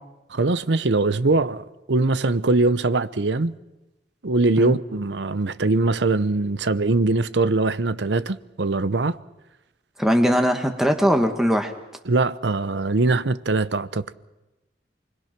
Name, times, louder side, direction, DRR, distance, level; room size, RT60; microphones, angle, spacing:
voice 1, 0.3-3.5 4.2-9.2 12.1-14.0, right 3 dB, 70° right, 0.8 m, -22 dB
voice 2, 10.0-11.7, equal, 5° right, 1.5 m, -20 dB
28.5 x 21.0 x 6.0 m
head